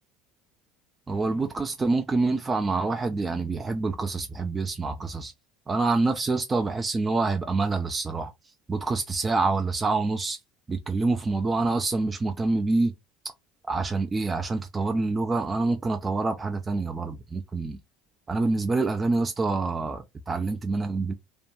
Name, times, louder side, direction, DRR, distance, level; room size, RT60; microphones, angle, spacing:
voice 1, 1.1-5.3 5.7-10.4 10.7-12.9 13.7-17.8 18.3-21.1, right 3 dB, 20° right, 0.3 m, -26 dB
2.5 x 2.2 x 2.9 m
hypercardioid pair, 75°, 0 cm